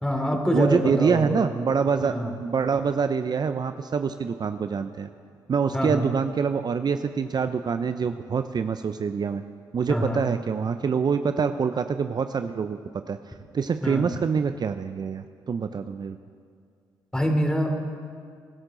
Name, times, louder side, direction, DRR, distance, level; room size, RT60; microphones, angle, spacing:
voice 1, 0.0-1.5 2.0-2.3 5.7-6.1 9.9-10.2 13.8-14.0 17.1-17.7, equal, 5° left, 3 dB, 3.3 m, -25 dB
voice 2, 0.5-2.1 2.4-5.1 5.5-9.4 9.7-12.8 13.1-13.2 13.5-16.2, right 6 dB, 45° right, 9 dB, 0.6 m, -25 dB
23.5 x 12.5 x 3.9 m, 2.1 s
hypercardioid pair, 45°, 10 cm